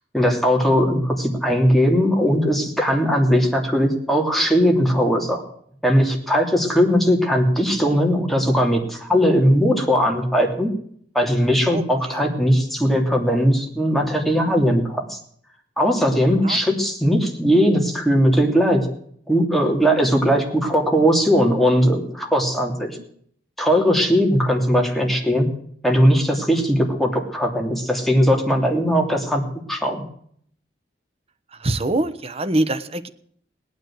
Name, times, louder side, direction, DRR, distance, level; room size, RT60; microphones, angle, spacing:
voice 1, 0.1-5.4 5.8-10.7 11.1-15.2 15.8-18.9 19.3-23.0 23.6-25.5 25.8-29.4 29.7-30.0, equal, ahead, 1 dB, 3.0 m, -19 dB
voice 2, 11.7-12.2 16.4-16.6 31.6-33.1, right 2 dB, 35° right, 10 dB, 1.0 m, -24 dB
18.5 x 9.5 x 7.8 m, 0.63 s
head